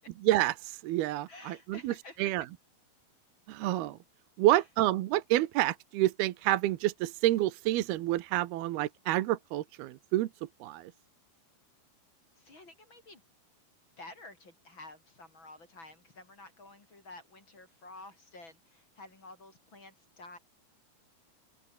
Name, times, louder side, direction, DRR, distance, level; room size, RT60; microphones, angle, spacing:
voice 1, 0.2-2.5 3.5-4.0 4.4-10.3 10.6-10.9, right 15 dB, 75° right, 2.8 m, -28 dB
voice 2, 1.3-2.3 4.5-4.6 12.4-13.2 14.0-20.4, left 2 dB, 25° left, 5.6 m, -51 dB
omnidirectional pair, 4.9 m